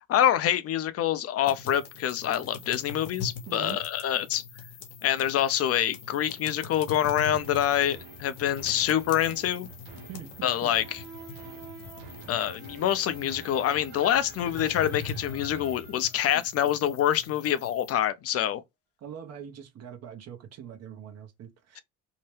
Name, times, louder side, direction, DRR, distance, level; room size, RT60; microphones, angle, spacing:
voice 1, 0.1-4.4 5.0-9.7 10.4-11.0 12.3-18.6, left 11 dB, 45° left, 0.5 m, -26 dB
sound 1, 1.4-17.9, left 5 dB, 85° left, 0.9 m, -43 dB
voice 2, 3.5-3.8 10.1-10.7 19.0-21.8, right 8 dB, 50° right, 0.9 m, -43 dB
sound 2, 7.3-16.7 17.1-17.2, right 6 dB, 85° right, 0.8 m, -47 dB
2.8 x 2.1 x 3.2 m
supercardioid pair, 95°, 33 cm